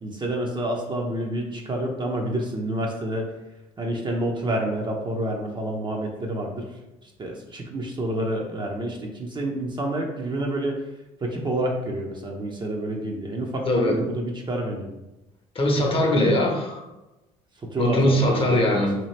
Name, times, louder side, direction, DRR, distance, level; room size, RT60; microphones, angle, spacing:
voice 1, 0.0-3.3 3.8-6.7 7.0-10.8 11.2-14.9 17.6-18.8, right 1 dB, 25° right, 0 dB, 0.6 m, -28 dB
voice 2, 13.7-14.0 15.5-16.8 17.8-19.0, left 1 dB, 30° left, 1 dB, 0.8 m, -21 dB
2.8 x 2.3 x 3.2 m, 0.99 s
hypercardioid pair, 65°, 18 cm